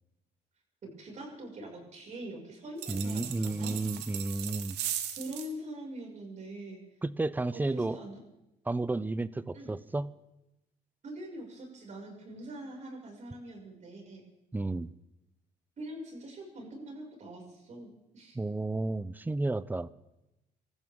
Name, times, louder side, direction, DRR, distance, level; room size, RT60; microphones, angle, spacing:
voice 1, 1.0-3.8 5.2-6.8 7.5-8.2 9.5-9.7 11.0-14.2 15.8-18.4, right 1 dB, 45° right, 0 dB, 6.0 m, -43 dB
sound 1, 2.8-5.5, right 10 dB, 85° right, 1.6 m, -38 dB
voice 2, 2.9-4.8 7.0-8.0 8.7-10.1 14.5-14.9 18.3-19.9, right 2 dB, 10° right, 17 dB, 0.5 m, -32 dB
27.0 x 14.5 x 3.7 m, 0.91 s
cardioid pair, 110°, 17 cm